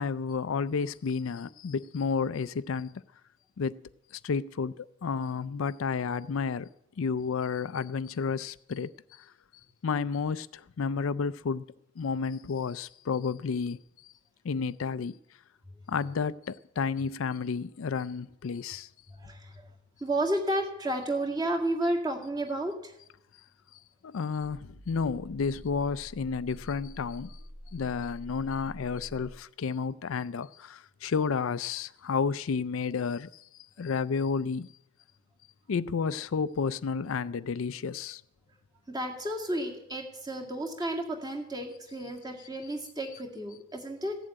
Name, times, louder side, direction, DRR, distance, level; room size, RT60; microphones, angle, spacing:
voice 1, 0.0-2.9 3.6-3.8 4.1-6.7 7.0-9.3 9.8-11.6 12.0-13.8 14.4-15.2 15.9-18.9 24.0-27.4 27.7-33.4 33.8-34.7 35.7-38.2, left 5 dB, 75° left, 0.4 m, -31 dB
voice 2, 19.2-19.7 20.0-22.9 38.9-44.2, right 1 dB, 20° right, 2.0 m, -32 dB
sound 1, 24.4-29.4, equal, 90° right, 1.5 m, -47 dB
15.5 x 7.5 x 9.0 m
head